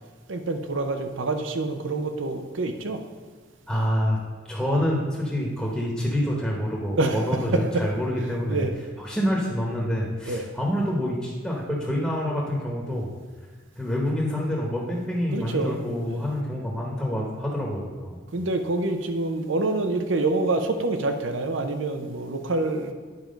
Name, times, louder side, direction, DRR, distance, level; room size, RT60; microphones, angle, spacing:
voice 1, 0.3-3.0 7.0-7.8 8.5-8.7 10.2-10.5 15.3-16.3 18.3-22.9, right 2 dB, 85° right, 7 dB, 0.7 m, -26 dB
voice 2, 3.7-4.2 4.5-8.6 9.0-13.1 13.8-18.2, equal, ahead, -3 dB, 1.0 m, -27 dB
9.5 x 4.6 x 5.2 m, 1.4 s
head